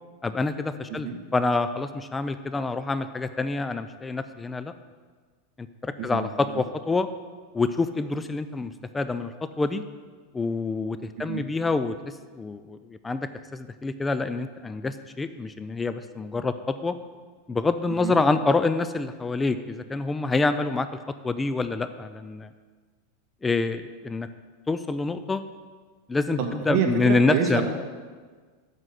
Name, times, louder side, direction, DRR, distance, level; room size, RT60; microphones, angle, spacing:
voice 1, 0.2-4.7 5.6-7.1 7.5-9.8 10.3-11.9 12.3-16.9 17.5-20.9 21.2-22.5 23.4-24.3 24.7-25.4 26.1-27.6, left 3 dB, 10° left, 11 dB, 0.4 m, -27 dB
voice 2, 26.4-27.7, right 6 dB, 50° right, 3 dB, 1.4 m, -27 dB
8.0 x 5.6 x 7.7 m, 1.5 s
supercardioid pair, 140°, 0 cm